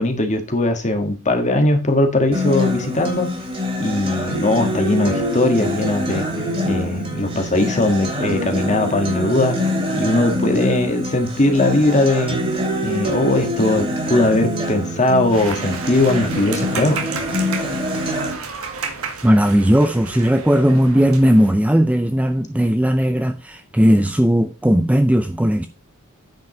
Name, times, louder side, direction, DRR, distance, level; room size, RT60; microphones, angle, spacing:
voice 1, 0.0-3.3 3.8-6.2 6.6-9.6 9.9-12.4 12.8-17.0, left 2 dB, 35° left, 1.7 m, -19 dB
Acoustic guitar, 2.3-18.3, left 1 dB, 25° right, 3.3 m, -25 dB
sound 1, 15.3-21.5, right 5 dB, 70° right, 1.8 m, -32 dB
voice 2, 19.2-25.7, equal, 5° right, 0.5 m, -16 dB
9.4 x 5.2 x 5.0 m
head